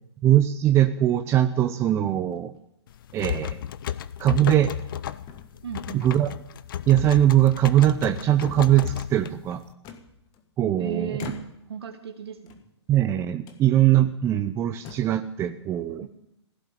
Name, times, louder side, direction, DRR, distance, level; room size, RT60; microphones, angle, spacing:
voice 1, 0.2-2.5 3.1-3.6 4.2-4.7 5.9-6.3 6.9-9.6 10.6-11.2 12.9-16.0, right 12 dB, 20° right, 8 dB, 0.6 m, -21 dB
sound 1, 0.7-1.1 1.9-2.6 3.4-3.6 4.0-4.1 4.6-5.0 5.3-6.0 7.0-7.8 8.1-8.9 9.8-10.7 11.1-11.8 12.4-13.1 13.4-13.6 14.3-14.4 14.7-15.2, left 7 dB, 25° left, 1.6 m, -45 dB
sound 2, 2.9-9.7, left 10 dB, 50° left, 0.7 m, -34 dB
voice 2, 5.6-6.1 10.8-11.4 11.7-12.6, right 8 dB, 60° right, 4 dB, 2.2 m, -35 dB
16.0 x 8.3 x 8.8 m, 0.83 s
figure-of-eight pair, 120°, 15 cm